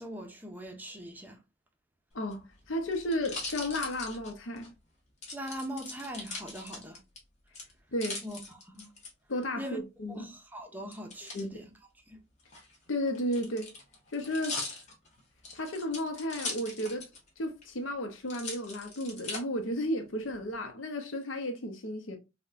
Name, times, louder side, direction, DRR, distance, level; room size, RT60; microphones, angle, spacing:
voice 1, 0.0-1.4 5.3-7.0 8.2-8.4 8.6-8.9 9.6-9.8 10.1-11.6 12.1-12.2, equal, 10° right, 0.5 m, -41 dB
voice 2, 2.1-4.7 7.9-8.2 9.3-10.3 11.3-11.7 12.9-13.7 14.1-14.7 15.5-17.1 17.4-22.2, left 1 dB, 80° left, 0.7 m, -33 dB
sound 1, 2.2-4.7 5.2-7.2 7.5-9.1 10.9-11.4 12.4-17.3 17.6-17.7 18.3-19.4 20.0-20.6, left 3 dB, 35° left, 1.0 m, -40 dB
4.1 x 2.2 x 2.4 m
head